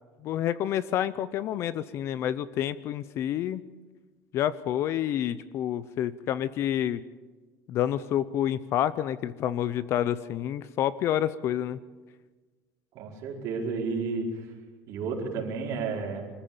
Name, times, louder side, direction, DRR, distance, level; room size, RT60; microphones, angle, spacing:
voice 1, 0.2-3.6 4.3-7.0 7.7-11.8, left 11 dB, 35° left, 17 dB, 0.6 m, -28 dB
voice 2, 12.9-14.5 14.9-16.3, right 4 dB, 45° right, -1 dB, 4.8 m, -32 dB
25.5 x 14.5 x 8.7 m, 1.3 s
cardioid pair, 180°, 7 cm